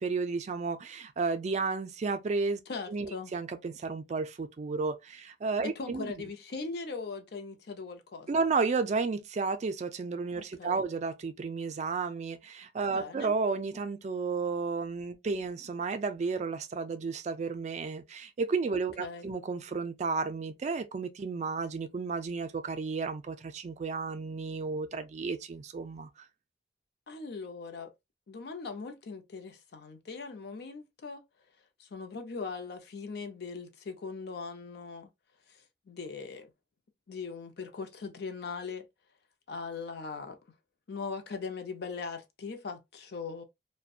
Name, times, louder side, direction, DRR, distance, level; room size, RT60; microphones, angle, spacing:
voice 1, 0.0-2.6 2.9-6.1 8.3-26.1, right 4 dB, 40° right, 0.3 m, -32 dB
voice 2, 2.7-3.3 5.6-8.4 10.3-10.8 12.8-13.3 18.7-19.3 27.1-27.9 28.3-31.2 31.8-35.1 35.5-36.5 37.1-38.9 39.5-40.4 40.9-43.4, left 4 dB, 60° left, 0.5 m, -40 dB
2.6 x 2.1 x 2.3 m
head